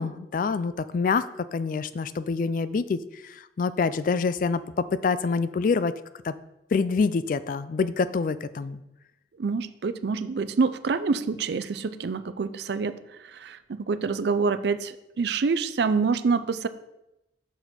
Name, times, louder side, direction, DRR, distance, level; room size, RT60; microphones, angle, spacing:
voice 1, 0.0-5.9 6.2-6.3 6.7-8.8, left 4 dB, 45° left, 14 dB, 0.3 m, -26 dB
voice 2, 9.4-13.0 13.3-16.7, right 4 dB, 65° right, 13 dB, 0.4 m, -26 dB
6.6 x 6.1 x 4.2 m, 0.92 s
head